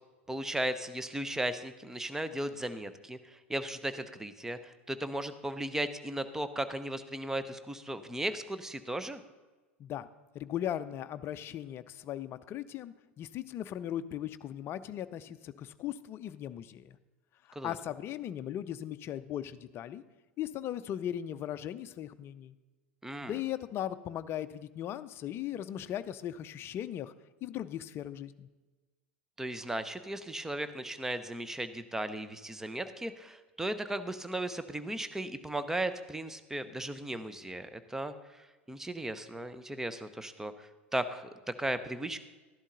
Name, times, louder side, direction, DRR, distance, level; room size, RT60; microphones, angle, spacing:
voice 1, 0.3-9.2 17.5-17.7 23.0-23.4 29.4-42.2, right 1 dB, 5° right, 11 dB, 0.8 m, -36 dB
voice 2, 10.3-17.0 17.5-20.0 20.4-22.5 23.2-27.1 27.4-28.5, left 11 dB, 35° left, 13 dB, 0.6 m, -38 dB
13.0 x 11.0 x 3.9 m, 1.2 s
figure-of-eight pair, 85°, 7 cm